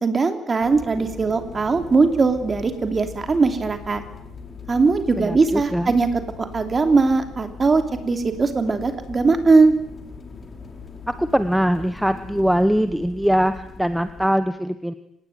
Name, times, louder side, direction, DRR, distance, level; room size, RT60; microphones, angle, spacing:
voice 1, 0.0-4.0 4.7-6.1 6.4-9.7, right 4 dB, 25° right, 7 dB, 3.0 m, -20 dB
sound 1, 0.6-14.3, left 4 dB, 30° left, 4.1 m, -40 dB
voice 2, 5.2-5.9 11.1-14.9, equal, ahead, 10 dB, 1.0 m, -22 dB
25.5 x 19.5 x 9.3 m, 0.77 s
cardioid pair, 155°, 0 cm